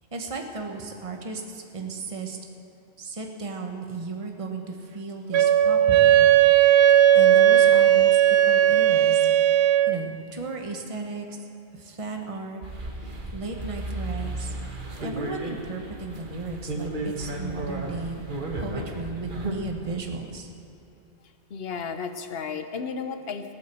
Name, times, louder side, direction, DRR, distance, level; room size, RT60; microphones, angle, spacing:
voice 1, 0.1-2.4 3.0-6.2 7.1-9.3 9.9-11.4 11.7-12.6 13.0-14.5 15.0-18.3 18.5-20.5, right 3 dB, 30° right, 2 dB, 1.3 m, -35 dB
Wind instrument woodwind instrument, 5.3-10.0, right 11 dB, 75° right, 0.8 m, -17 dB
sound 1, 12.6-19.9, right 2 dB, 45° right, 1.6 m, -34 dB
voice 2, 21.5-23.5, left 5 dB, 65° left, 8 dB, 1.1 m, -33 dB
18.5 x 8.7 x 6.9 m, 3.0 s
omnidirectional pair, 1.1 m